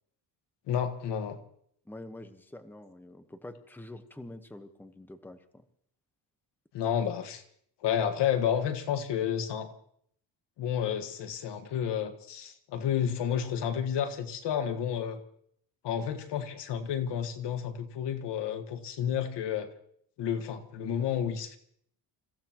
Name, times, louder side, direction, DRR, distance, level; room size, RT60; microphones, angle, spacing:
voice 1, 0.7-1.4 6.7-7.4 7.8-9.7 10.6-15.2 15.8-19.7 20.2-21.6, left 8 dB, 75° left, 8 dB, 1.8 m, -31 dB
voice 2, 1.9-5.6, left 1 dB, 5° left, 8 dB, 1.2 m, -46 dB
29.0 x 16.0 x 3.0 m, 0.67 s
cardioid pair, 125°, 42 cm